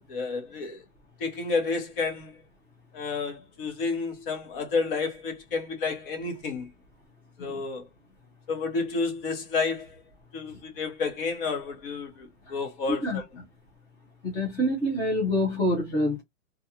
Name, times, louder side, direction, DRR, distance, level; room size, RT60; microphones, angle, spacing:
voice 1, 0.1-0.8 1.2-2.3 2.9-6.7 7.4-7.9 8.5-9.9 10.3-13.2, left 4 dB, 40° left, 1.1 m, -30 dB
voice 2, 12.9-13.4 14.2-16.2, left 1 dB, 5° left, 0.5 m, -27 dB
2.4 x 2.4 x 2.8 m
hypercardioid pair, 150°, 41 cm